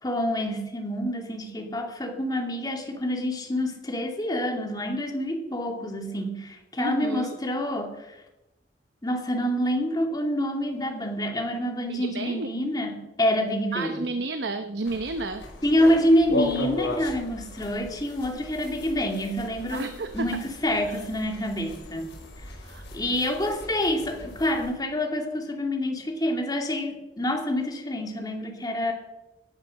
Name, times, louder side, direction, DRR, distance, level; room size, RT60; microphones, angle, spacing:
voice 1, 0.0-8.2 9.0-14.1 15.6-22.2 22.9-28.9, left 1 dB, 20° left, 2 dB, 2.3 m, -27 dB
voice 2, 6.8-7.4 11.9-12.5 13.7-15.5 19.7-20.4 20.8-21.0 22.6-22.9, right 2 dB, 75° right, 8 dB, 0.9 m, -32 dB
sound 1, 14.8-24.7, left 1 dB, 85° left, 5.4 m, -37 dB
17.5 x 9.4 x 6.4 m, 0.97 s
head